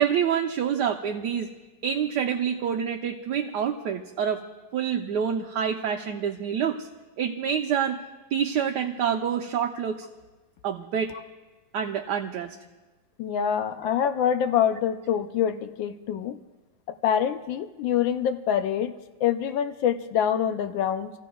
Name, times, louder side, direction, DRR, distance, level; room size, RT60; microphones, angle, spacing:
voice 1, 0.0-1.5 1.8-4.4 4.7-6.9 7.2-8.0 8.3-10.1 10.6-11.2 11.7-12.6, right 8 dB, 70° right, 2 dB, 1.2 m, -27 dB
voice 2, 13.2-16.4 16.9-21.2, left 9 dB, 85° left, 9 dB, 1.4 m, -25 dB
29.5 x 15.0 x 2.3 m, 1.2 s
omnidirectional pair, 2.0 m